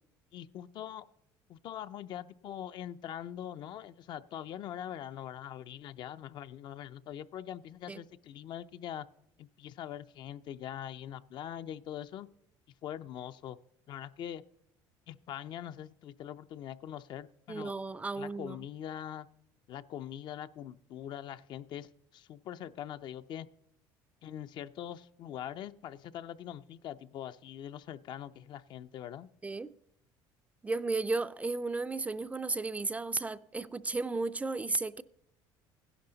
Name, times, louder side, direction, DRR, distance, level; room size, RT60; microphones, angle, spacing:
voice 1, 0.3-1.1 1.5-9.1 9.4-12.3 12.8-13.6 13.9-14.4 15.1-17.7 18.2-19.3 19.7-23.5 24.2-29.3, left 10 dB, 55° left, 0.5 m, -43 dB
voice 2, 17.5-18.6 29.4-29.7 30.6-35.0, right 3 dB, 15° right, 0.4 m, -34 dB
15.5 x 11.0 x 3.9 m
cardioid pair, 110°, 9 cm